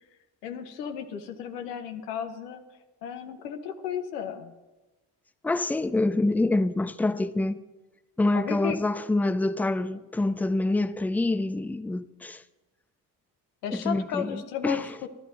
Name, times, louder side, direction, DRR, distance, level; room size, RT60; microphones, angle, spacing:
voice 1, 0.4-2.6 3.0-4.5 8.3-8.8 13.6-15.1, left 9 dB, 90° left, 0.9 m, -34 dB
voice 2, 5.4-7.6 8.2-12.4 13.7-14.9, left 2 dB, 5° left, 0.4 m, -26 dB
13.0 x 11.5 x 3.8 m
hypercardioid pair, 60°, 46 cm